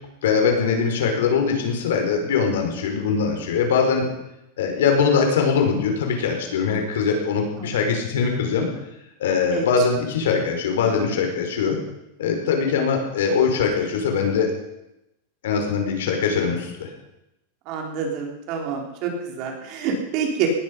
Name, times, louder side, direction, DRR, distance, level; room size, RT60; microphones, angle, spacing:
voice 1, 0.2-4.1 4.6-8.7 9.2-11.8 12.2-14.5 15.4-16.9, left 5 dB, 80° left, 3 dB, 5.1 m, -22 dB
voice 2, 17.7-20.5, right 7 dB, 40° right, 2 dB, 3.9 m, -27 dB
19.0 x 14.0 x 5.5 m, 0.88 s
supercardioid pair, 170°, 0 cm